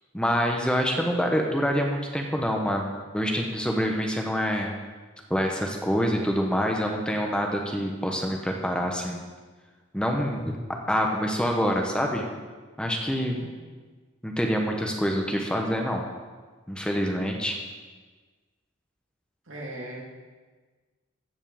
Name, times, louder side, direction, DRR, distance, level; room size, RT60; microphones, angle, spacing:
voice 1, 0.1-4.7 5.3-9.2 9.9-10.5 10.9-12.3 12.8-13.4 14.2-16.0 16.7-17.6, equal, 5° left, 1 dB, 1.0 m, -26 dB
voice 2, 19.5-20.0, right 1 dB, 75° right, -3 dB, 2.9 m, -38 dB
15.0 x 5.4 x 7.1 m, 1.4 s
head